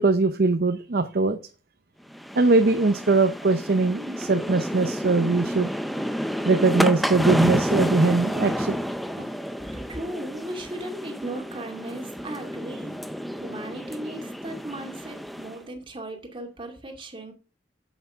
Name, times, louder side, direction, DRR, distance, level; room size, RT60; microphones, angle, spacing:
voice 1, 0.0-1.4 2.4-5.7 6.4-8.8 9.2-9.3, right 3 dB, 55° right, 9 dB, 0.7 m, -21 dB
sound 1, 2.1-15.6, equal, ahead, 0.6 m, -30 dB
voice 2, 9.6-13.0 13.3-17.3, right 1 dB, 30° right, 3 dB, 2.3 m, -37 dB
8.0 x 8.0 x 5.6 m, 0.36 s
head